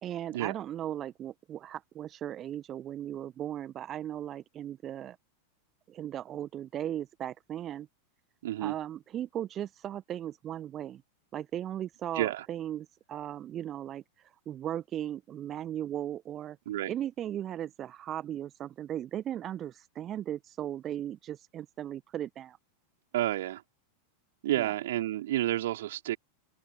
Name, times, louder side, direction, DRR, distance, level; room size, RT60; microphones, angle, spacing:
voice 1, 0.0-5.2 5.9-7.9 8.6-11.0 11.3-16.6 16.9-22.6 24.6-24.7, right 11 dB, 30° right, 1.5 m, -37 dB
voice 2, 8.4-8.8 12.1-12.5 16.7-16.9 23.1-23.6 24.4-26.2, right 14 dB, 55° right, 4.4 m, -30 dB
figure-of-eight pair, 90°, 0 cm